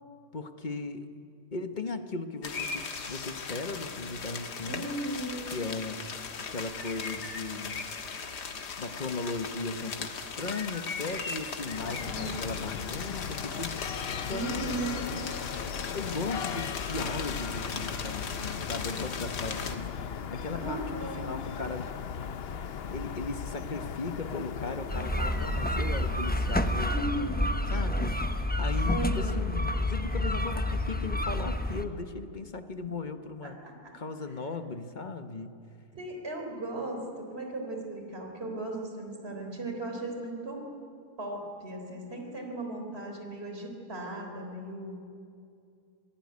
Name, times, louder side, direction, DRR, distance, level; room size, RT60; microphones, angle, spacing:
voice 1, 0.3-1.1 1.5-4.9 5.5-6.0 6.5-7.8 8.8-14.6 15.9-21.9 22.9-27.2 27.7-28.3 28.6-33.6 33.9-35.5, left 3 dB, 30° left, 8 dB, 1.2 m, -37 dB
sound 1, 2.4-19.8, left 5 dB, 85° left, 2.2 m, -38 dB
voice 2, 4.6-5.5 12.0-12.3 12.9-13.2 14.3-15.2 20.5-21.3 26.9-27.6 28.9-29.5 33.4-33.9 35.9-40.6 41.2-45.0, right 2 dB, 40° right, 2 dB, 4.2 m, -37 dB
sound 2, 11.7-27.2, left 7 dB, 50° left, 0.8 m, -38 dB
sound 3, 24.9-31.8, left 1 dB, 10° left, 0.7 m, -29 dB
26.0 x 18.0 x 9.7 m, 2.4 s
omnidirectional pair, 1.7 m